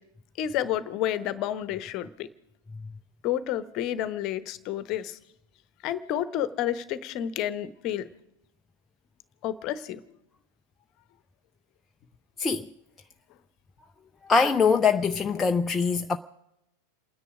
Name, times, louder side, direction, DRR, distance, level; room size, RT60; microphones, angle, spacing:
voice 1, 0.4-2.3 3.2-5.2 5.8-8.1 9.4-10.0, left 11 dB, 40° left, 1.0 m, -30 dB
voice 2, 12.4-12.7 14.2-16.2, left 5 dB, 15° left, 0.5 m, -23 dB
28.5 x 10.0 x 5.0 m
figure-of-eight pair, 90°, 0 cm